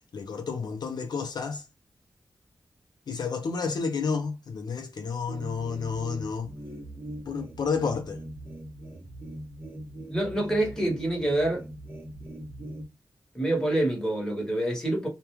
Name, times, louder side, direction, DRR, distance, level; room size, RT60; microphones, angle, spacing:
voice 1, 0.1-1.6 3.1-6.5 7.3-8.2, left 5 dB, 70° left, 0.5 m, -30 dB
sound 1, 5.3-12.8, right 1 dB, 30° right, 0.6 m, -41 dB
voice 2, 10.1-11.7 13.3-15.1, right 1 dB, 10° left, 1.1 m, -26 dB
2.3 x 2.1 x 3.0 m
wide cardioid pair, 125°, 7 cm